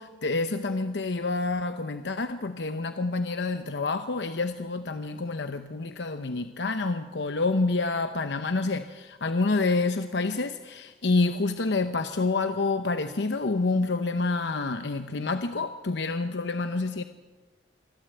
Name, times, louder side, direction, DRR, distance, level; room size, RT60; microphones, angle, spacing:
voice 1, 0.0-17.0, left 3 dB, 75° left, 9 dB, 0.8 m, -28 dB
26.0 x 12.5 x 7.9 m, 1.2 s
head